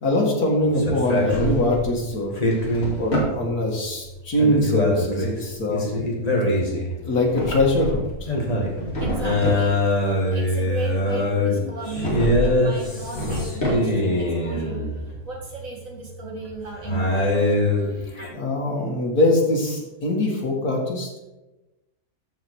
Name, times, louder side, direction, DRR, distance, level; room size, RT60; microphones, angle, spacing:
voice 1, 0.0-2.4 3.0-5.9 7.0-8.3 18.3-21.1, left 1 dB, 80° left, -1 dB, 2.6 m, -22 dB
sound 1, 0.6-15.2 16.2-18.3, left 1 dB, 25° left, 1.8 m, -24 dB
Drawer open or close, 0.9-1.9 2.4-3.4 7.0-8.2 8.6-9.7 11.9-12.6 12.9-14.2, equal, 45° left, 2.7 m, -28 dB
voice 2, 9.0-9.8 10.0-17.4, right 2 dB, 60° right, -1 dB, 2.2 m, -35 dB
13.5 x 4.9 x 4.7 m, 1.0 s
omnidirectional pair, 1.6 m